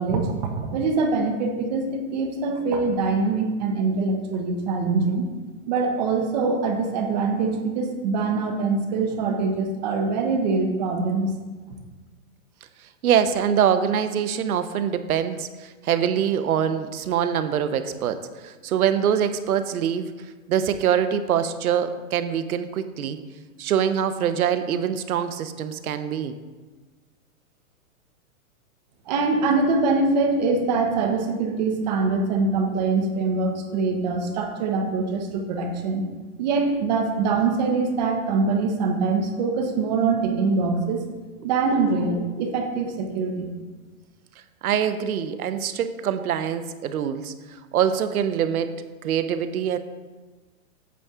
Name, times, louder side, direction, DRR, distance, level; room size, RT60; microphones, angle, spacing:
voice 1, 0.0-5.2 5.7-11.3 29.1-36.1 36.4-41.1 41.4-43.5, right 4 dB, 30° right, 4 dB, 0.9 m, -23 dB
voice 2, 13.0-20.1 20.5-23.2 23.6-26.3 41.4-41.5 44.6-47.3 47.7-48.7 49.0-49.8, right 8 dB, 85° right, 11 dB, 0.8 m, -24 dB
8.5 x 7.2 x 3.6 m, 1.3 s
hypercardioid pair, 165°, 42 cm